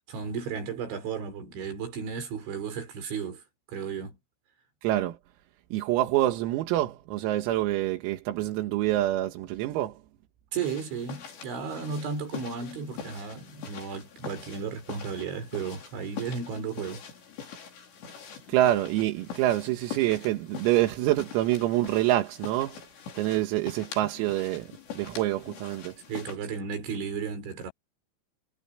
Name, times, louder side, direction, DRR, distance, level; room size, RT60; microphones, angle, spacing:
voice 1, 0.1-3.4 3.7-4.2 10.5-17.0 26.1-27.7, right 6 dB, 65° right, 7.1 m, -34 dB
voice 2, 4.8-5.2 5.7-9.9 18.5-22.8 23.2-24.7 25.0-25.9, right 15 dB, 85° right, 4.3 m, -26 dB
sound 1, 10.6-26.4, left 7 dB, 60° left, 6.8 m, -44 dB
omnidirectional pair, 6.0 m